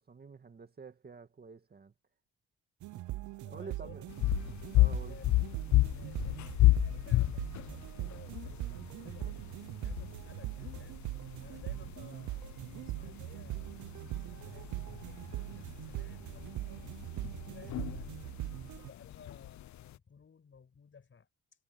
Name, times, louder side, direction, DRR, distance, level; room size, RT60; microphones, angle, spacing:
voice 1, 0.1-1.9 3.5-4.1 4.7-5.2, right 5 dB, 30° right, 2.0 m, -48 dB
sound 1, 2.8-18.9, right 16 dB, 75° right, 0.8 m, -41 dB
voice 2, 3.4-4.1 5.1-5.3 5.9-11.0 11.4-17.0 17.5-18.4 18.8-21.3, left 6 dB, 40° left, 6.9 m, -57 dB
sound 2, 4.1-20.0, left 17 dB, 70° left, 0.6 m, -32 dB
cardioid pair, 90°, 30 cm